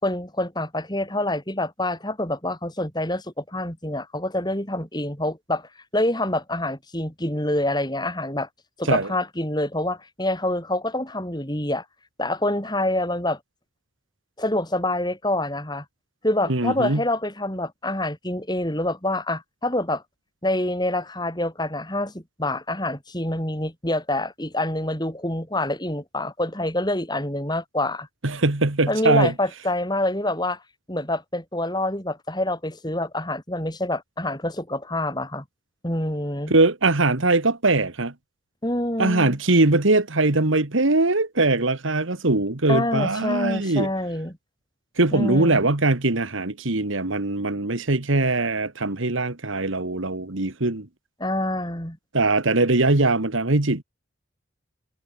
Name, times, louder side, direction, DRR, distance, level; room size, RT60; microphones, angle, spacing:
voice 1, 0.0-8.5 8.8-11.8 12.2-13.4 14.4-15.8 16.2-20.0 20.4-28.1 28.9-30.6 30.9-35.4 35.8-36.5 38.6-39.4 42.7-44.3 45.1-45.7 51.2-52.0, left 1 dB, 20° left, 5.5 m, -26 dB
voice 2, 16.5-17.0 28.2-29.3 36.5-38.1 39.0-43.9 45.0-50.9 52.1-53.8, right 2 dB, 70° right, 1.8 m, -21 dB
head